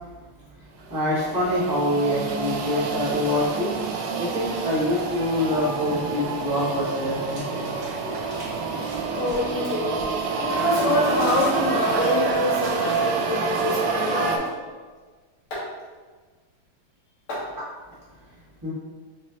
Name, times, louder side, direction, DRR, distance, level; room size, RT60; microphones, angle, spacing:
voice 1, 0.0-3.7 4.2-7.7 18.6-18.7, left 1 dB, 10° right, -10 dB, 1.0 m, -26 dB
sound 1, 0.9-14.4, right 4 dB, 75° right, 1.1 m, -27 dB
sound 2, 5.5-6.4 6.6-14.5, right 1 dB, 50° right, 1.8 m, -45 dB
voice 2, 9.1-9.9 10.3-14.5 15.5-15.7 17.3-17.5, left 2 dB, 80° left, -8 dB, 2.4 m, -26 dB
5.0 x 3.1 x 2.8 m, 1.4 s
omnidirectional pair, 2.3 m